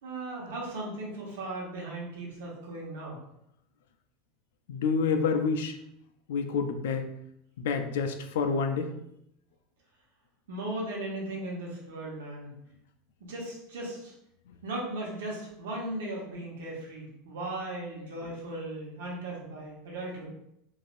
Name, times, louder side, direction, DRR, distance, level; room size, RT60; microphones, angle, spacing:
voice 1, 0.0-3.2 10.5-12.5 13.3-14.1 14.6-20.3, right 1 dB, 90° right, -3 dB, 1.1 m, -37 dB
voice 2, 4.7-5.7 6.3-7.1 7.6-8.9, left 5 dB, 85° left, 7 dB, 0.4 m, -28 dB
3.2 x 2.6 x 2.5 m, 0.78 s
supercardioid pair, 130°, 0 cm